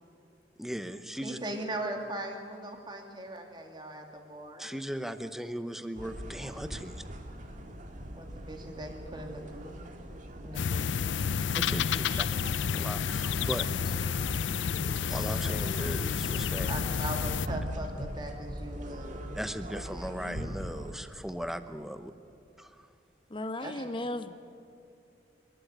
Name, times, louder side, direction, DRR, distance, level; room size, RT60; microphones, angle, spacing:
voice 1, 0.6-1.4 4.6-7.0 11.5-12.3 12.7-13.9 15.1-16.7 19.4-22.1 22.6-22.7, equal, ahead, 10 dB, 0.8 m, -38 dB
voice 2, 1.2-4.7 8.1-9.8 10.4-10.9 12.1-12.3 16.7-19.3 23.6-24.1, right 1 dB, 25° right, 3 dB, 2.5 m, -39 dB
sound 1, 6.0-20.9, equal, 45° right, 2.0 m, -41 dB
sound 2, 10.5-17.5, left 7 dB, 80° left, 0.5 m, -30 dB
voice 3, 23.3-24.3, left 1 dB, 30° left, 10 dB, 1.0 m, -35 dB
30.0 x 12.0 x 9.4 m, 2.7 s
head